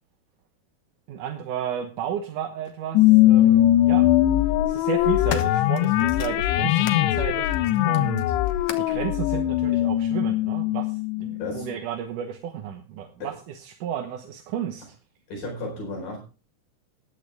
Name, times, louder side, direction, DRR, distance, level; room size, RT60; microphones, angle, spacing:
voice 1, 1.1-4.1 4.7-7.6 7.8-8.3 8.8-14.9, right 9 dB, 65° right, 5 dB, 2.1 m, -33 dB
sound 1, 2.6-2.8 3.9-4.2 4.8-7.1 7.5-9.0 9.9-10.0, left 10 dB, 75° left, 1.8 m, -37 dB
sound 2, 2.9-11.7, left 14 dB, 90° left, 2.9 m, -21 dB
voice 2, 15.3-16.2, left 2 dB, 55° left, 0 dB, 6.0 m, -33 dB
15.5 x 11.0 x 3.4 m, 0.33 s
omnidirectional pair, 4.9 m